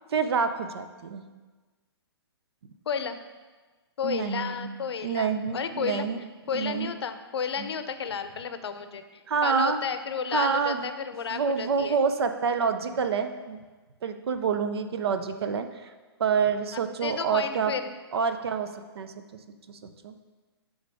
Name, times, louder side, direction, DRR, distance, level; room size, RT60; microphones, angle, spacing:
voice 1, 0.1-1.2 4.0-4.7 5.0-6.2 6.5-6.9 7.6-7.7 9.3-9.8 10.3-10.9 11.3-13.6 14.0-15.9 16.2-17.7 18.1-19.1 19.7-20.1, right 6 dB, 70° right, 8 dB, 0.6 m, -27 dB
voice 2, 2.9-3.2 4.0-6.1 6.5-12.0 16.7-17.9, left 6 dB, 75° left, 10 dB, 0.6 m, -32 dB
9.7 x 3.9 x 3.4 m, 1.3 s
hypercardioid pair, 140°, 14 cm